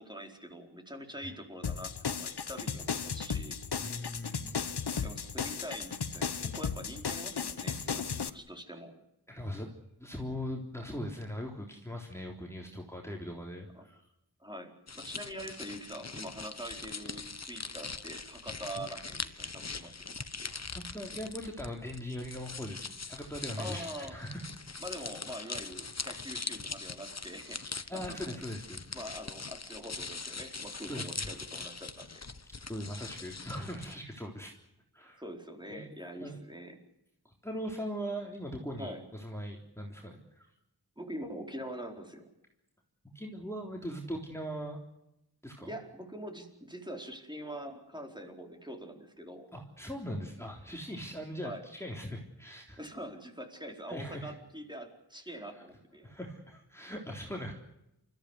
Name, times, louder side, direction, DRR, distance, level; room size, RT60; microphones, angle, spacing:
voice 1, 0.0-3.6 5.0-8.9 13.7-13.8 14.4-20.5 23.6-24.2 24.8-28.4 28.9-32.2 35.2-36.8 38.8-39.0 41.0-42.3 45.6-49.5 51.4-51.6 52.8-56.1, equal, 10° right, 2 dB, 4.6 m, -44 dB
sound 1, 1.6-8.3, left 6 dB, 85° left, 1.1 m, -35 dB
voice 2, 3.8-4.6 4.9-5.0 9.3-9.7 10.0-14.1 20.7-24.4 27.9-28.8 30.9-31.3 32.6-34.5 34.9-35.2 35.7-35.9 36.2-36.4 37.2-40.5 43.1-44.8 45.4-45.8 49.5-52.8 53.9-54.3 55.5-55.6 56.0-57.5, equal, 5° left, 0 dB, 3.7 m, -40 dB
sound 2, 14.9-33.9, left 4 dB, 45° left, 1.2 m, -42 dB
29.0 x 15.0 x 8.2 m, 0.85 s
wide cardioid pair, 60°, 38 cm